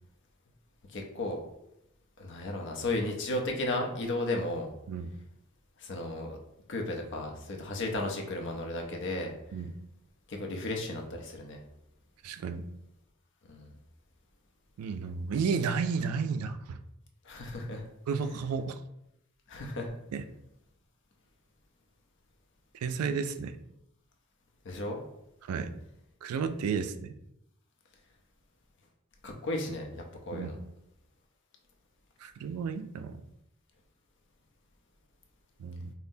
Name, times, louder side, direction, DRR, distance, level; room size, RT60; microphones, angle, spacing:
voice 1, 0.9-1.4 2.2-4.7 5.8-6.4 6.7-9.3 10.3-11.6 13.5-13.6 17.3-17.8 19.5-19.9 24.6-25.0 29.2-30.5, left 2 dB, 55° left, 2 dB, 0.6 m, -34 dB
voice 2, 12.2-12.6 14.8-16.8 18.1-18.8 20.1-20.3 22.8-23.6 25.5-25.7 26.2-27.1 30.3-30.5 32.2-33.2 35.6-35.9, right 5 dB, 85° right, 10 dB, 0.3 m, -32 dB
5.5 x 2.1 x 2.6 m, 0.84 s
head